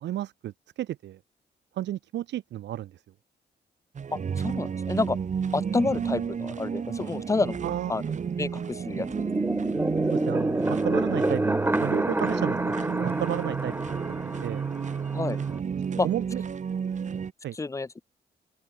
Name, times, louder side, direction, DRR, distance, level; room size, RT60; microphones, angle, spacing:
voice 1, 0.0-1.2 1.8-3.0 7.6-8.0 10.1-11.4 11.8-13.7 14.4-14.6 16.0-16.4 17.4-17.6, right 13 dB, 80° right, 0.6 m, -32 dB
sound 1, 3.9-17.3, right 6 dB, 45° right, 0.9 m, -32 dB
voice 2, 4.1-5.2 5.5-7.6 7.9-8.0 8.4-9.1 15.1-15.4 16.0-16.1 17.5-18.0, left 3 dB, 15° left, 0.5 m, -29 dB
sound 2, 9.1-15.6, right 2 dB, 10° right, 1.6 m, -28 dB
open air
cardioid pair, 80°, 18 cm